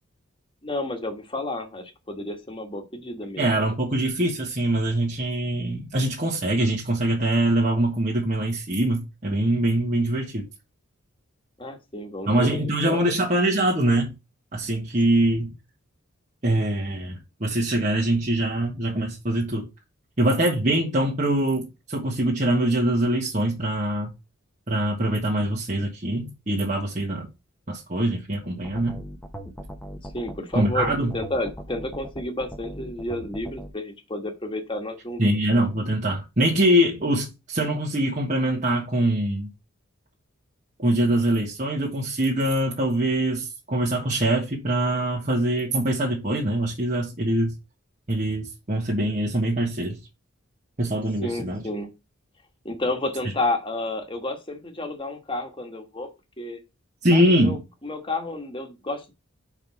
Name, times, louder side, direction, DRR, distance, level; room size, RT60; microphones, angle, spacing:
voice 1, 0.6-3.5 11.6-13.1 30.0-35.2 51.2-51.9 52.6-56.1 56.4-56.6 57.1-59.1, left 2 dB, 25° left, 1.5 m, -31 dB
voice 2, 3.4-10.5 12.3-14.1 14.5-15.5 16.4-19.7 20.2-24.1 24.7-27.3 27.7-29.0 30.5-31.1 35.2-39.5 40.8-47.6 48.1-50.0 50.8-51.6 57.0-57.6, right 1 dB, 35° right, 1.4 m, -23 dB
sound 1, 28.6-33.7, right 1 dB, 5° left, 1.0 m, -38 dB
5.4 x 4.9 x 5.8 m
head